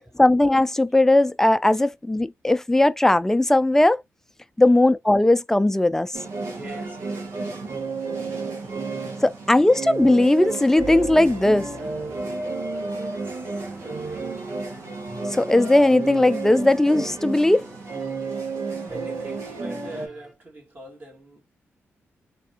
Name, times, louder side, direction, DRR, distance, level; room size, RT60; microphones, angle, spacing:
voice 1, 0.2-4.0 4.6-6.1 9.2-11.7 15.3-17.6, left 1 dB, 10° left, 0.4 m, -18 dB
sound 1, 6.1-20.1, right 4 dB, 80° right, 1.3 m, -32 dB
voice 2, 6.5-7.8 8.3-8.6 9.0-9.2 12.9-14.6 18.7-21.4, right 1 dB, 40° right, 1.9 m, -45 dB
sound 2, 10.5-20.3, equal, 10° right, 1.0 m, -44 dB
3.4 x 3.4 x 2.8 m
cardioid pair, 75°, 5 cm